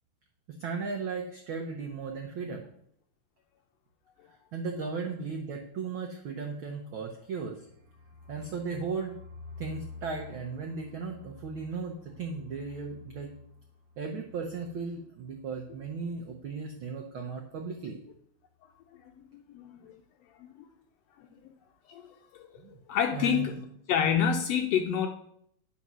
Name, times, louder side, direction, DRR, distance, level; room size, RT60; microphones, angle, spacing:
voice 1, 0.5-2.6 4.5-7.6 8.3-9.2 9.6-13.3 14.0-18.0 22.6-22.7 23.1-23.6, right 5 dB, 85° right, 2 dB, 1.1 m, -36 dB
sound 1, 7.2-16.8 17.1-17.2 17.5-17.9, left 4 dB, 50° right, 1.3 m, -51 dB
voice 2, 18.9-19.2 19.5-20.0 20.4-20.7 21.4-21.5 21.9-22.1 22.9-23.6 23.9-25.1, left 8 dB, 80° left, 4 dB, 1.5 m, -28 dB
10.0 x 4.2 x 6.1 m, 0.70 s
omnidirectional pair, 3.4 m